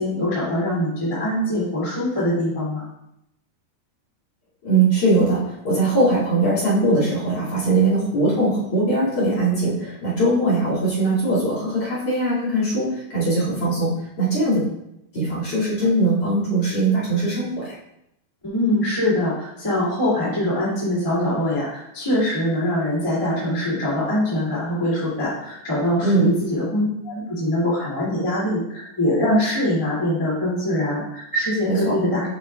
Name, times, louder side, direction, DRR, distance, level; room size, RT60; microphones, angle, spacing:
voice 1, 0.0-2.8 18.4-32.3, left 1 dB, 15° left, -9 dB, 1.1 m, -23 dB
voice 2, 4.6-14.6 15.1-17.7 26.0-26.3 31.7-31.9, right 2 dB, 40° left, -9 dB, 2.9 m, -21 dB
9.5 x 5.2 x 2.4 m, 0.82 s
omnidirectional pair, 5.3 m